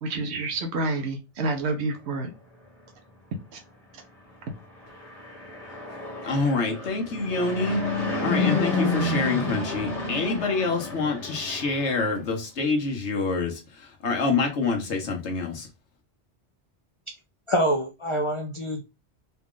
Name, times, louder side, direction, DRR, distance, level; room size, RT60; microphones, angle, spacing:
voice 1, 0.0-2.3 3.5-3.6, right 2 dB, 70° right, 1.1 m, -28 dB
Fixed-wing aircraft airplane, 4.8-12.2, left 2 dB, 35° left, 1.6 m, -30 dB
voice 2, 6.2-7.8 8.2-13.6 14.0-15.7, left 4 dB, 75° left, 1.3 m, -26 dB
voice 3, 17.5-18.8, equal, 50° left, 0.3 m, -25 dB
4.2 x 2.4 x 3.6 m
omnidirectional pair, 1.2 m